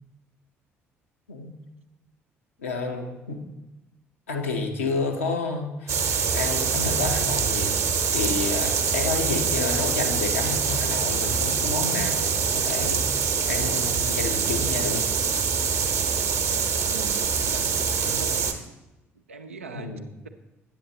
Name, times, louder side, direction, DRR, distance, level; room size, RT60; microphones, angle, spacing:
voice 1, 2.6-3.4 4.3-15.1 19.7-20.1, left 3 dB, 75° left, 3 dB, 0.8 m, -30 dB
sound 1, 5.9-18.5, right 6 dB, 45° right, 0.9 m, -25 dB
voice 2, 16.9-18.5 19.3-19.9, right 5 dB, 80° right, 6 dB, 0.5 m, -41 dB
9.2 x 7.8 x 4.0 m, 1.0 s
figure-of-eight pair, 50°, 7 cm